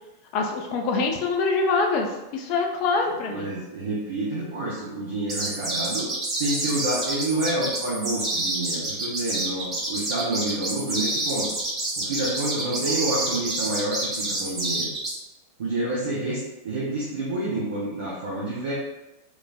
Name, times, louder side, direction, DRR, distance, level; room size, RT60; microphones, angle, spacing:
voice 1, 0.3-3.5, left 4 dB, 40° left, 1 dB, 0.5 m, -24 dB
voice 2, 3.3-6.1 6.4-11.5 12.0-14.9 15.6-16.4 16.6-18.7, right 1 dB, 60° right, -6 dB, 0.7 m, -28 dB
sound 1, 5.3-15.1, right 2 dB, 30° right, 0.9 m, -28 dB
3.1 x 2.4 x 2.2 m, 1.0 s
figure-of-eight pair, 90°, 0 cm